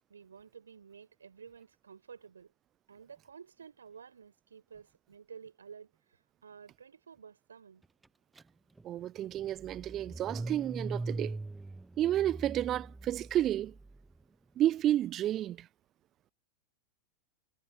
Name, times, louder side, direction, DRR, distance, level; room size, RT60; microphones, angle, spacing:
voice 1, 0.1-2.5 2.9-7.8, right 6 dB, 70° right, 5.0 m, -52 dB
Car / Engine starting, 8.4-8.5 8.8-14.0, right 2 dB, 10° right, 0.7 m, -41 dB
voice 2, 8.8-11.4 12.0-13.7 14.6-15.7, right 12 dB, 30° right, 0.4 m, -31 dB
figure-of-eight pair, 90°, 0 cm